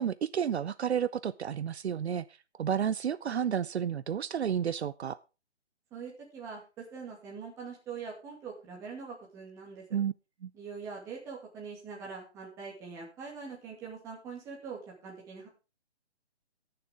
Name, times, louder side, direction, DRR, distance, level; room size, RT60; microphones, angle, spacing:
voice 1, 0.0-2.2 2.6-5.2 9.9-10.1 10.4-10.5, right 8 dB, 75° right, 17 dB, 0.6 m, -31 dB
voice 2, 5.9-9.8 10.5-15.5, right 5 dB, 10° right, -2 dB, 2.3 m, -43 dB
18.0 x 6.8 x 3.6 m, 0.30 s
hypercardioid pair, 170°, 33 cm